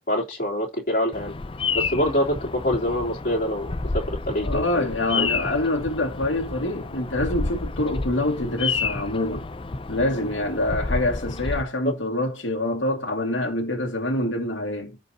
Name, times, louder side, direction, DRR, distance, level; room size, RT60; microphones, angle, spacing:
voice 1, 0.1-1.3 1.7-5.3 11.8-11.9, left 1 dB, 45° left, 3.4 m, -26 dB
Bird vocalization bird call bird song, 1.1-11.6, left 4 dB, 30° left, 0.5 m, -30 dB
voice 2, 4.4-9.5 9.9-15.0, left 1 dB, 80° left, 2.2 m, -26 dB
15.5 x 5.4 x 2.9 m
head